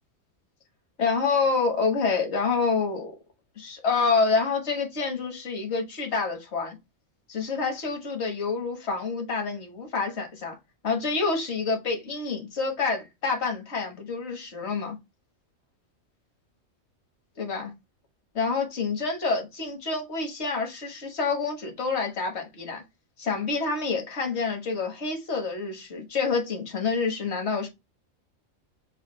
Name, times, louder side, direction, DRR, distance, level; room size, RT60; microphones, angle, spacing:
voice 1, 1.0-3.1 3.6-6.8 7.3-10.6 10.8-15.0 17.4-17.7 18.3-22.8 23.2-27.7, left 4 dB, 55° left, 1.5 m, -27 dB
6.3 x 2.4 x 3.2 m
omnidirectional pair, 1.3 m